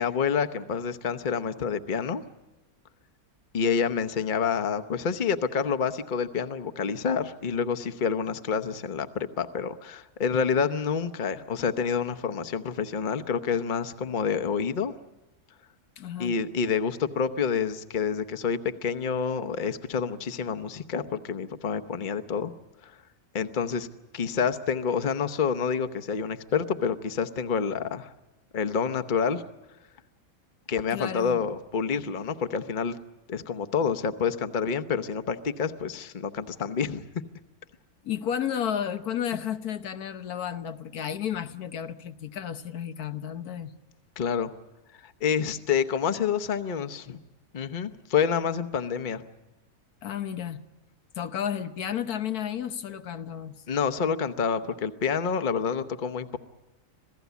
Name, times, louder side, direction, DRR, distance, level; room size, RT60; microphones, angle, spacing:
voice 1, 0.0-2.2 3.5-14.9 16.2-22.5 22.8-22.9 23.3-23.9 24.1-28.1 28.5-29.4 30.7-33.0 33.3-37.0 44.2-44.5 45.0-47.2 47.5-49.2 53.7-56.4, left 6 dB, 40° left, 9 dB, 1.0 m, -28 dB
voice 2, 16.0-16.3 30.9-31.4 38.0-43.7 50.0-50.6 51.1-53.6, left 9 dB, 90° left, 9 dB, 1.5 m, -32 dB
27.0 x 17.0 x 8.2 m, 1.1 s
omnidirectional pair, 1.5 m